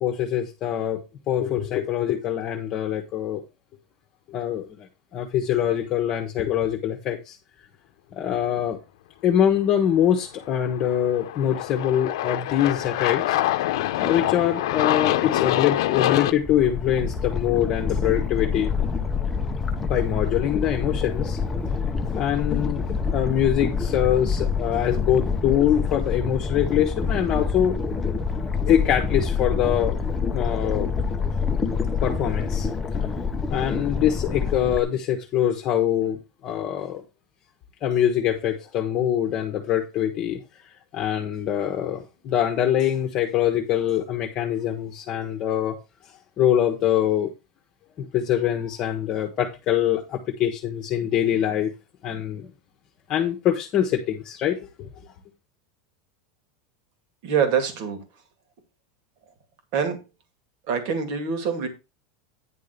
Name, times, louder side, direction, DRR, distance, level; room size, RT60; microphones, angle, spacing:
voice 1, 0.0-3.4 4.3-7.4 8.1-8.8 9.2-13.4 14.0-18.7 19.8-21.4 22.1-22.8 23.1-27.8 28.6-30.0 30.3-30.9 32.0-32.7 33.5-37.0 37.8-40.4 40.9-45.8 46.4-47.3 48.0-51.7 52.0-52.5 53.1-54.9, left 10 dB, 30° left, 1.1 m, -24 dB
Aircraft, 10.6-16.3, left 14 dB, 70° left, 0.8 m, -25 dB
sound 1, 16.4-34.8, left 5 dB, 10° left, 0.7 m, -26 dB
voice 2, 57.2-58.0 59.7-60.0 60.7-61.7, right 6 dB, 50° right, 2.2 m, -24 dB
9.8 x 3.7 x 6.7 m
supercardioid pair, 165°, 2 cm